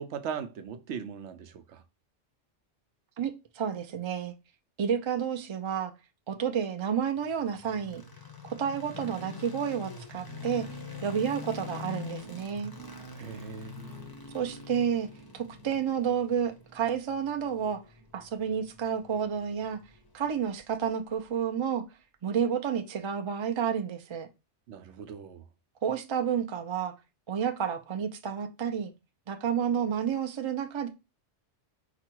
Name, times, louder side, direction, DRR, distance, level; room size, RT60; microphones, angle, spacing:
voice 1, 0.0-1.8 13.2-14.0 24.7-25.4, right 7 dB, 80° right, 0.9 m, -39 dB
voice 2, 3.2-4.3 4.8-5.9 6.3-8.0 8.4-10.7 11.0-12.7 14.3-15.1 15.3-17.8 18.1-19.8 20.1-21.8 22.2-24.3 25.8-26.9 27.3-28.9 29.3-30.9, right 8 dB, 40° right, 0.4 m, -30 dB
sound 1, 7.2-21.3, left 4 dB, 25° left, 0.5 m, -45 dB
4.9 x 2.3 x 4.5 m
omnidirectional pair, 1.2 m